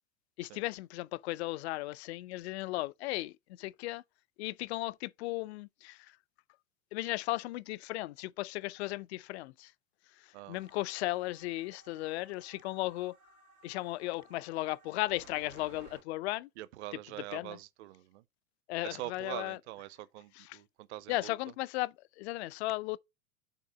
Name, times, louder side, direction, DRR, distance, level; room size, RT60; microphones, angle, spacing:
voice 1, 0.4-4.0 4.4-6.1 6.9-9.7 10.5-13.2 13.6-16.5 17.3-17.6 18.7-19.6 20.4-20.6 21.1-23.0, left 19 dB, 55° left, 0.5 m, -36 dB
sound 1, 10.6-16.0, right 4 dB, 80° right, 2.0 m, -59 dB
voice 2, 16.6-18.2 18.8-21.3, right 16 dB, 55° right, 0.7 m, -44 dB
5.8 x 3.8 x 5.7 m
figure-of-eight pair, 90°, 41 cm